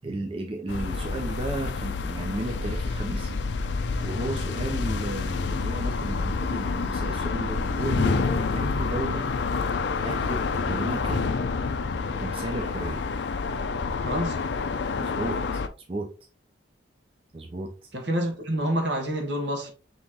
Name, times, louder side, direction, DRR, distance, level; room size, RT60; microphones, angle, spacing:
voice 1, 0.0-3.7 4.0-9.3 9.7-9.8 10.0-11.2 12.2-13.0 15.0-15.6 15.9-16.1 17.3-17.9, right 2 dB, 30° right, 0.6 m, -34 dB
sound 1, 0.7-15.7, left 4 dB, 70° left, 0.5 m, -28 dB
voice 2, 14.0-14.4 17.9-19.7, equal, 70° right, 1.3 m, -27 dB
5.4 x 3.1 x 2.9 m
head